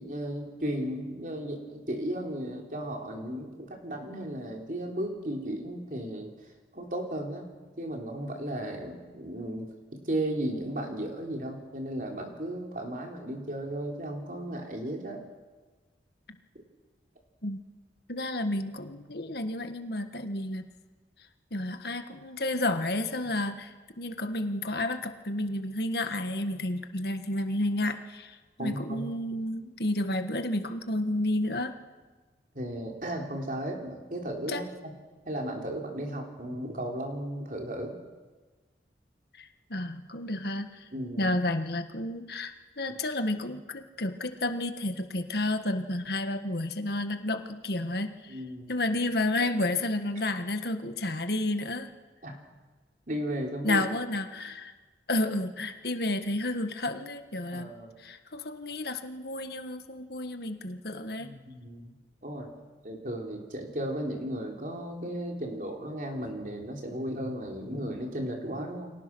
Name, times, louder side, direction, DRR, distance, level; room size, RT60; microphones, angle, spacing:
voice 1, 0.0-6.3 6.7-7.5 7.8-15.2 28.6-29.1 32.5-34.9 35.3-37.9 40.9-41.3 48.3-48.7 52.2-52.3 53.1-53.9 57.5-57.9 61.2-61.9 62.2-62.5 62.8-68.9, right 1 dB, 45° right, 1 dB, 4.0 m, -35 dB
voice 2, 18.1-20.7 21.5-31.7 34.5-34.7 39.4-40.9 41.2-48.4 48.7-51.9 53.6-54.7 55.1-57.7 58.0-61.3, left 1 dB, 60° left, 7 dB, 1.6 m, -31 dB
30.0 x 24.0 x 6.3 m, 1.3 s
head